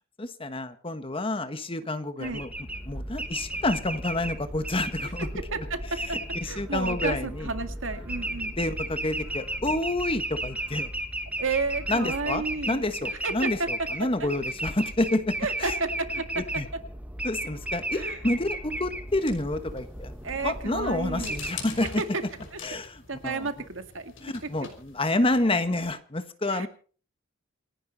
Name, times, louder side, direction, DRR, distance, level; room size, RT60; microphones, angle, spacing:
voice 1, 0.2-2.5 2.9-5.3 6.1-7.5 8.6-10.9 11.9-15.8 16.4-16.7 17.2-20.1 20.4-22.0 22.6-23.5 24.2-26.7, left 2 dB, 30° left, 10 dB, 1.4 m, -29 dB
sound 1, 2.2-21.5, right 1 dB, 5° right, 1.7 m, -35 dB
voice 2, 5.4-6.2 6.4-8.5 11.4-12.9 13.2-13.3 13.6-13.7 14.2-14.3 15.4-16.3 17.9-18.2 20.2-21.4 21.8-22.0 23.1-24.3 26.5-26.7, right 3 dB, 75° right, 8 dB, 2.0 m, -32 dB
sound 2, 19.1-25.6, left 5 dB, 80° left, 5.6 m, -45 dB
28.0 x 11.0 x 4.1 m, 0.42 s
head